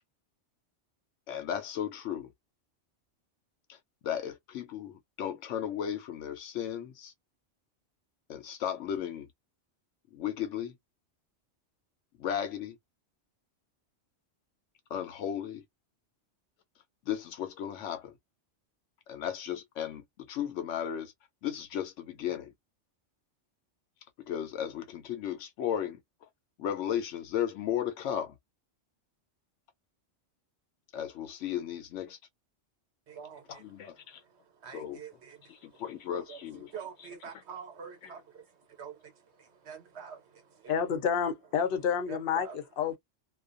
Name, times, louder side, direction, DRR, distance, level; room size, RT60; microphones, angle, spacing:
voice 1, 1.3-2.3 3.7-3.8 4.0-7.1 8.3-9.3 10.1-10.7 12.2-12.8 14.9-15.6 17.1-18.1 19.1-21.1 21.4-22.5 24.3-26.0 26.6-28.3 30.9-32.2 33.5-34.2 34.7-35.0 35.5-36.7, left 9 dB, 85° left, 0.9 m, -35 dB
voice 2, 33.1-40.8 42.1-42.6, right 7 dB, 70° right, 1.0 m, -47 dB
voice 3, 40.7-43.0, left 7 dB, 55° left, 0.8 m, -29 dB
2.3 x 2.2 x 2.4 m
omnidirectional pair, 1.2 m